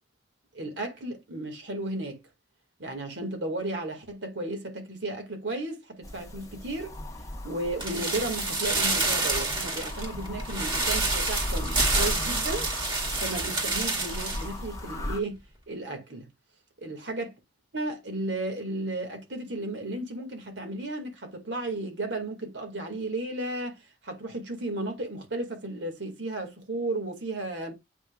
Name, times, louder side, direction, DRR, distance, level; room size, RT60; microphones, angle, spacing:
voice 1, 0.5-2.2 2.8-7.0 7.4-12.7 13.2-15.4 15.7-16.3 16.8-17.3 17.7-27.7, right 2 dB, 75° right, 2.1 m, -34 dB
sound 1, 6.0-15.2, left 1 dB, 20° left, 1.2 m, -36 dB
sound 2, 7.8-14.5 14.8-14.9, right 3 dB, 30° right, 2.1 m, -28 dB
8.2 x 5.3 x 2.4 m
head